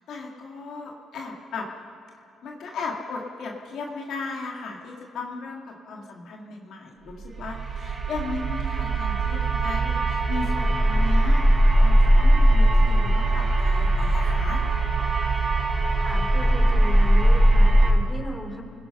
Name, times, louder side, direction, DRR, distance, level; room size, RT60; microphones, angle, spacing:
voice 1, 0.1-1.7 2.4-11.5 11.8-14.6, left 4 dB, 75° left, 0 dB, 2.7 m, -36 dB
sound 1, 7.2-17.9, right 1 dB, 40° right, 4.3 m, -20 dB
voice 2, 16.0-18.6, left 1 dB, 20° left, 2 dB, 3.7 m, -36 dB
29.5 x 20.0 x 5.6 m, 2.4 s
cardioid pair, 90°, 0 cm